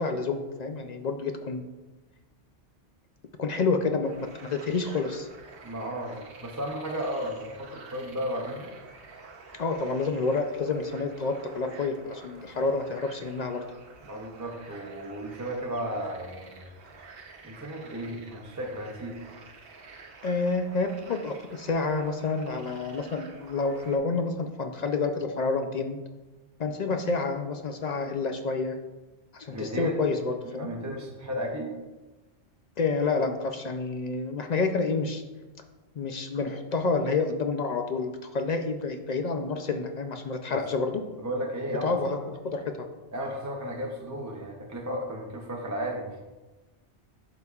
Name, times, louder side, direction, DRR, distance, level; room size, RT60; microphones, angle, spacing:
voice 1, 0.0-1.6 3.4-5.3 9.6-13.6 20.2-26.0 26.6-28.8 29.3-30.7 32.8-35.2 36.0-41.0 41.8-42.9, left 4 dB, 55° left, 6 dB, 0.5 m, -29 dB
sound 1, 4.0-24.0, right 4 dB, 60° right, 1.1 m, -49 dB
voice 2, 5.6-8.7 14.0-16.6 17.4-19.2 29.5-30.0 30.4-31.7 40.5-40.6 41.2-42.2 43.1-46.2, equal, 20° right, -1 dB, 0.6 m, -34 dB
11.0 x 5.0 x 2.4 m, 1.2 s
omnidirectional pair, 1.2 m